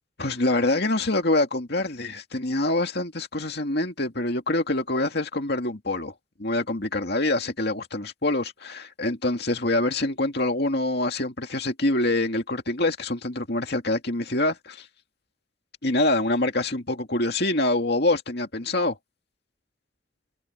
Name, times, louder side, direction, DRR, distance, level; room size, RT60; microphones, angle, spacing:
voice 1, 0.2-6.1 6.4-14.9 15.8-19.0, left 2 dB, 55° left, 2.4 m, -25 dB
head